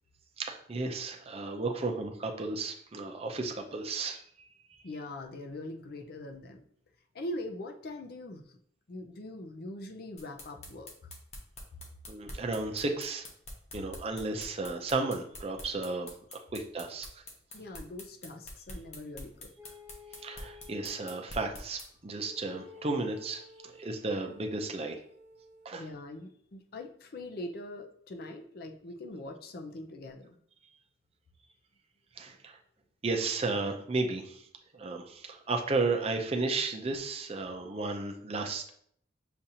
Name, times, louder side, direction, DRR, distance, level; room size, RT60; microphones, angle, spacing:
voice 1, 0.4-4.2 4.7-4.8 12.1-13.3 13.7-17.2 20.2-25.0 25.6-25.8 32.2-32.6 33.0-34.5 34.7-38.7, right 3 dB, 35° right, 3 dB, 0.5 m, -33 dB
voice 2, 4.8-6.6 7.1-8.6 8.9-11.1 17.5-19.5 25.7-30.4, left 1 dB, 55° left, 4 dB, 0.5 m, -42 dB
sound 1, 10.2-21.9, left 1 dB, 35° left, 0.9 m, -45 dB
sound 2, 19.6-21.2 22.2-25.8, left 4 dB, 5° right, 0.9 m, -52 dB
6.9 x 2.5 x 2.8 m, 0.64 s
head